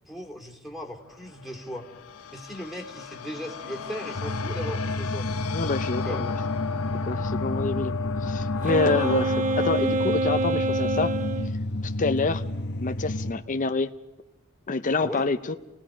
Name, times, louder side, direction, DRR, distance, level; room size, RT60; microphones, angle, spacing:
voice 1, 0.1-1.9 2.3-5.3 6.1-6.2 15.0-15.2, equal, ahead, 0 dB, 2.7 m, -37 dB
sound 1, 1.1-11.4, left 6 dB, 85° left, 1.1 m, -35 dB
sound 2, 4.1-13.3, left 1 dB, 50° left, 0.9 m, -31 dB
voice 2, 5.5-6.3 7.0-11.2 11.8-12.4 12.8-13.9 14.7-15.6, left 3 dB, 35° left, 7 dB, 0.6 m, -27 dB
Wind instrument woodwind instrument, 8.6-11.5, right 2 dB, 35° right, 1.0 m, -26 dB
29.5 x 18.0 x 5.0 m, 1.1 s
head